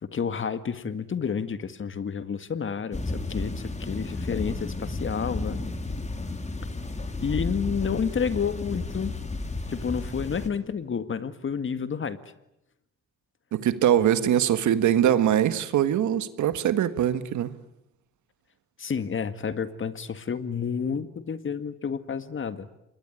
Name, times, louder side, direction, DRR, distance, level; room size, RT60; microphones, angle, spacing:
voice 1, 0.0-5.6 7.2-9.1 9.7-12.2 14.0-14.1 18.8-22.8, left 6 dB, 40° left, 1.9 m, -30 dB
sound 1, 2.9-10.5, left 2 dB, 25° left, 2.9 m, -33 dB
voice 2, 13.5-17.5, right 10 dB, 75° right, 1.6 m, -22 dB
27.0 x 21.5 x 9.9 m
cardioid pair, 90°, 30 cm